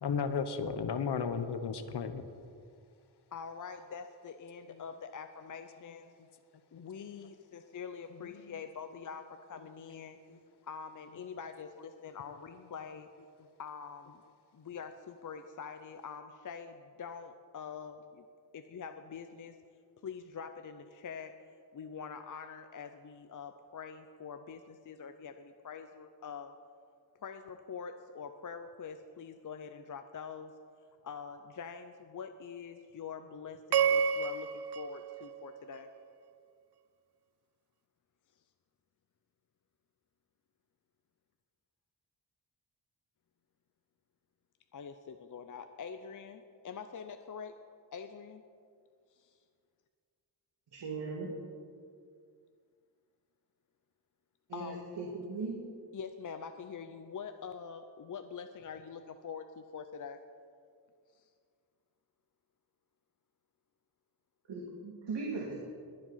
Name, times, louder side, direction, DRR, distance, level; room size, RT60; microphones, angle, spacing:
voice 1, 0.0-2.2 6.8-6.9 8.4-8.5 10.3-10.4, left 6 dB, 70° left, 10 dB, 0.9 m, -34 dB
voice 2, 3.3-6.1 6.7-10.2 10.6-13.1 13.6-14.2 14.5-18.2 18.5-19.5 20.0-21.3 21.7-26.5 27.2-30.5 31.0-35.9 44.7-47.5 47.9-48.4 49.1-49.4 54.5-54.8 55.9-60.2 61.1-61.3, left 6 dB, 50° left, 8 dB, 0.6 m, -45 dB
sound 1, 33.7-36.1, right 7 dB, 65° right, 0.6 m, -31 dB
voice 3, 50.7-51.3 54.5-55.6 64.5-65.5, right 3 dB, 90° right, -3 dB, 2.3 m, -38 dB
21.5 x 7.7 x 5.7 m, 2.2 s
wide cardioid pair, 150°, 42 cm